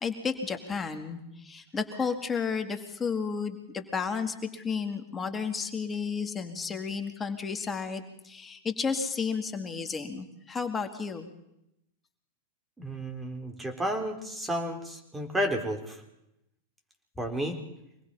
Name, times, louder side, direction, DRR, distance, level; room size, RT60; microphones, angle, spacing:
voice 1, 0.0-11.3, left 5 dB, 20° left, 6 dB, 2.2 m, -32 dB
voice 2, 12.8-16.0 17.2-17.6, equal, 10° right, 4 dB, 3.8 m, -32 dB
25.0 x 19.5 x 5.6 m, 0.84 s
hypercardioid pair, 100°, 0 cm